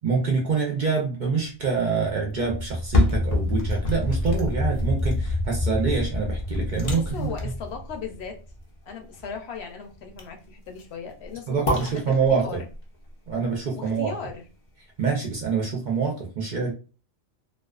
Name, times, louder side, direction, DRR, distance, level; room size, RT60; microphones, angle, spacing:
voice 1, 0.0-7.3 11.5-12.5 13.3-14.1 15.0-16.7, right 5 dB, 55° right, -1 dB, 0.6 m, -26 dB
sound 1, 1.8-8.6, left 1 dB, 5° left, 0.8 m, -29 dB
sound 2, 2.6-14.7 15.1-15.2, left 2 dB, 50° left, 0.4 m, -31 dB
voice 2, 6.9-8.4 8.9-12.7 13.7-14.4, left 6 dB, 70° left, 4 dB, 0.8 m, -37 dB
2.3 x 2.3 x 2.3 m, 0.34 s
omnidirectional pair, 1.2 m